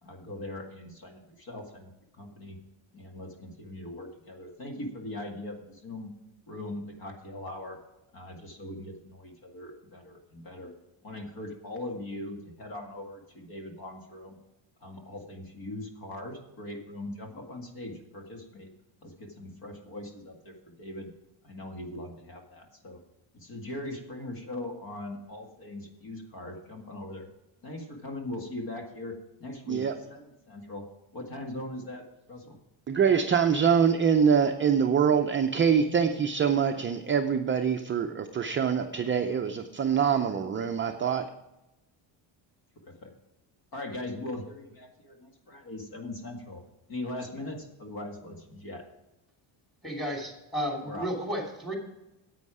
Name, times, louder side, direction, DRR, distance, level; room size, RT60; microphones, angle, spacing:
voice 1, 0.0-2.6 2.9-6.1 6.5-7.8 8.1-10.7 11.0-14.4 14.8-18.7 19.0-21.1 21.4-23.0 23.3-27.3 27.6-30.9 31.1-32.6 42.7-43.1 43.7-46.6 46.9-48.8 50.9-51.1, left 1 dB, 45° left, 3 dB, 1.9 m, -40 dB
voice 2, 32.9-41.3, right 7 dB, 25° right, 5 dB, 0.5 m, -24 dB
voice 3, 49.8-51.8, equal, ahead, 0 dB, 2.9 m, -33 dB
9.6 x 8.5 x 4.8 m, 0.94 s
cardioid pair, 125°, 49 cm